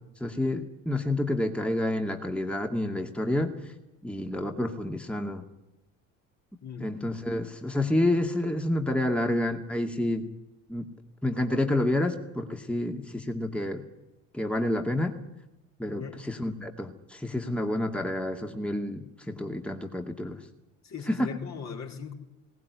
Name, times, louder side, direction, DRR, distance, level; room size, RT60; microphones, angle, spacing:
voice 1, 0.2-3.7 4.0-5.4 6.8-10.3 10.7-10.9 11.2-13.8 14.3-15.2 15.8-20.4 21.1-21.3, left 1 dB, 5° left, 4 dB, 2.2 m, -29 dB
voice 2, 6.6-6.9 15.9-16.3 20.8-22.1, left 6 dB, 45° left, 2 dB, 4.3 m, -39 dB
21.0 x 18.5 x 9.7 m, 0.96 s
hypercardioid pair, 60°, 40 cm